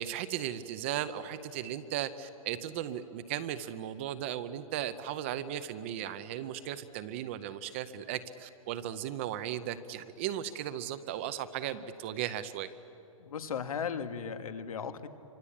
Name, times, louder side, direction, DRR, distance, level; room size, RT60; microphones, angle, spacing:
voice 1, 0.0-12.7, right 11 dB, 20° right, 12 dB, 0.6 m, -36 dB
voice 2, 13.2-15.1, left 7 dB, 75° left, 8 dB, 2.0 m, -36 dB
27.5 x 25.0 x 8.5 m, 2.9 s
hypercardioid pair, 175°, 18 cm